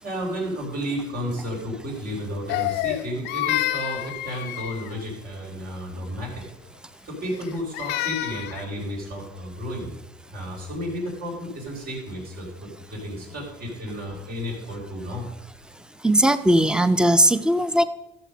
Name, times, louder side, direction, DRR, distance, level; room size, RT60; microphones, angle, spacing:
voice 1, 0.0-6.4 7.0-9.9 10.3-15.3, equal, 65° right, -1 dB, 4.6 m, -32 dB
Crying sobbing, 2.5-5.0 7.2-8.7, left 16 dB, 90° left, 0.6 m, -28 dB
voice 2, 16.0-17.8, right 1 dB, 5° right, 13 dB, 0.6 m, -18 dB
14.0 x 6.7 x 5.1 m, 0.92 s
cardioid pair, 110°, 17 cm